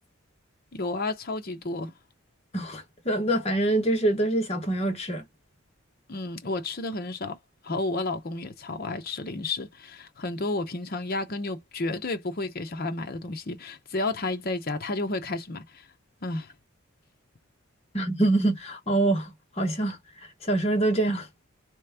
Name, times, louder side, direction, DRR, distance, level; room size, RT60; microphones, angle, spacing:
voice 1, 0.7-1.9 6.1-7.4 7.6-15.9 16.2-16.5, left 2 dB, 45° left, 0.7 m, -31 dB
voice 2, 2.5-5.2 17.9-20.0 20.4-21.3, right 2 dB, 30° left, 1.3 m, -25 dB
3.3 x 3.1 x 3.5 m
head